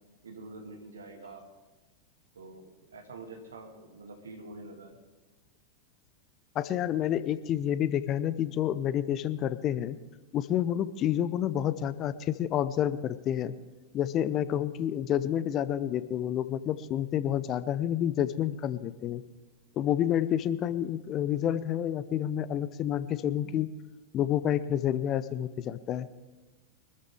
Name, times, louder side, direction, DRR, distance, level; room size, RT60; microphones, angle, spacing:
voice 1, 0.2-1.5 2.3-5.0, right 2 dB, 70° right, 3 dB, 2.6 m, -46 dB
voice 2, 6.5-10.0 10.3-13.5 13.9-19.2 19.8-23.7 24.1-26.1, left 10 dB, 35° left, 15 dB, 0.7 m, -29 dB
24.5 x 13.5 x 3.6 m, 1.2 s
figure-of-eight pair, 90°, 0 cm